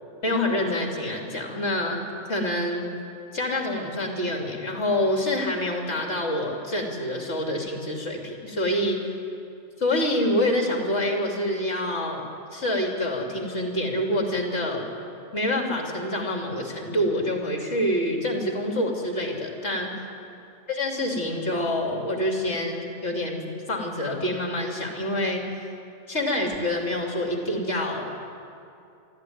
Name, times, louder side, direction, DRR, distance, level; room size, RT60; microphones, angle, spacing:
voice 1, 0.2-2.0 2.3-2.9 3.3-9.0 9.8-12.2 12.5-14.8 15.3-19.9 20.7-23.4 23.7-25.7 26.1-28.1, left 1 dB, 65° left, 1 dB, 3.4 m, -26 dB
24.0 x 14.0 x 9.5 m, 2.6 s
omnidirectional pair, 1.3 m